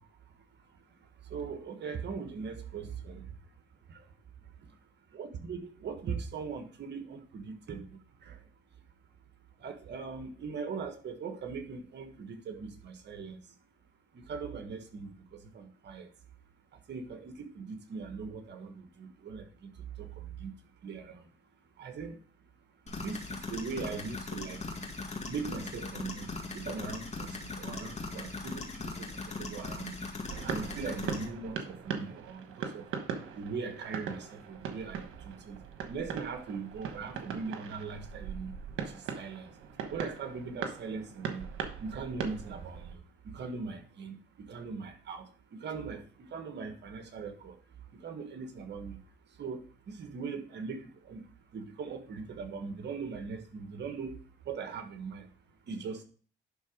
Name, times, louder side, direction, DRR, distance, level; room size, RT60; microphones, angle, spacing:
voice 1, 1.3-3.3 3.9-4.0 5.1-7.8 8.2-8.4 9.6-13.4 14.1-16.1 16.9-19.7 20.0-20.5 20.8-21.2 21.8-22.2 23.0-24.6 25.3-30.1 30.4-32.9 33.3-35.6 35.9-38.5 38.9-39.5 39.9-41.4 41.8-43.0 43.3-45.2 45.5-47.5 48.0-49.0 49.4-49.6 49.9-51.2 51.5-54.2 54.4-55.3 55.7-56.0, right 5 dB, 60° right, 6 dB, 1.6 m, -40 dB
sound 1, 22.9-31.3, left 3 dB, 35° left, 1.9 m, -40 dB
sound 2, 30.3-43.0, right 7 dB, 85° right, 1.2 m, -40 dB
11.0 x 3.9 x 5.0 m, 0.42 s
cardioid pair, 90°, 20 cm